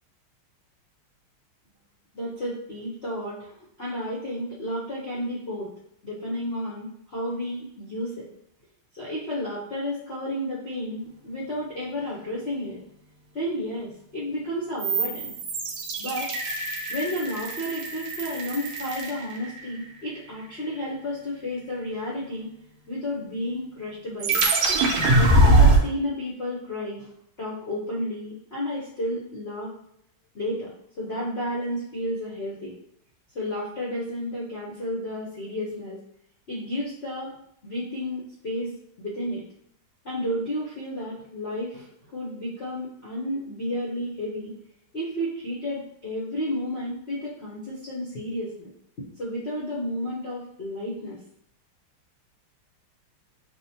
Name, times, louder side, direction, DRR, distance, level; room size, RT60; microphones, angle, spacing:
voice 1, 2.1-3.5 3.8-5.7 6.0-8.3 8.9-12.8 13.3-15.3 16.0-16.3 16.9-22.5 22.9-24.5 25.1-27.1 27.4-29.7 30.3-30.7 31.0-32.7 33.3-36.0 36.5-37.3 37.6-39.4 40.0-44.6 44.9-48.7 49.2-51.2, left 1 dB, 65° left, -7 dB, 0.6 m, -32 dB
sound 1, 14.8-19.8 24.2-25.8, right 2 dB, 75° right, 1.5 m, -22 dB
6.0 x 2.1 x 2.8 m, 0.71 s
omnidirectional pair, 2.3 m